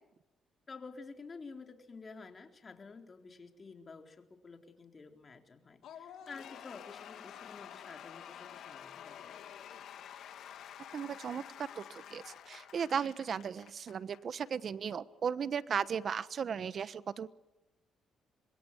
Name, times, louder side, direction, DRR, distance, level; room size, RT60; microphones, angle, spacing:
voice 1, 0.7-9.4, left 4 dB, 35° left, 4 dB, 3.9 m, -50 dB
Cheering / Applause / Crowd, 5.8-14.5, left 9 dB, 75° left, 2.6 m, -49 dB
voice 2, 10.9-17.3, right 7 dB, 50° right, 15 dB, 1.2 m, -36 dB
26.5 x 22.5 x 9.9 m, 0.96 s
cardioid pair, 90°, 0 cm